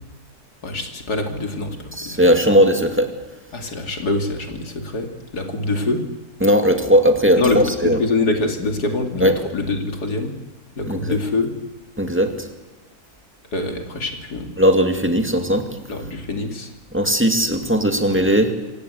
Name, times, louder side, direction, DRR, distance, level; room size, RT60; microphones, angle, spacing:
voice 1, 0.6-2.2 3.5-6.0 7.4-10.3 10.8-11.5 13.5-14.5 15.9-16.7, left 2 dB, 85° left, 4 dB, 3.2 m, -24 dB
voice 2, 2.0-3.1 6.4-8.0 9.2-9.3 10.9-11.2 12.0-12.5 14.6-15.7 16.9-18.5, equal, 10° right, 5 dB, 2.2 m, -17 dB
26.5 x 17.0 x 8.1 m, 1.1 s
omnidirectional pair, 1.6 m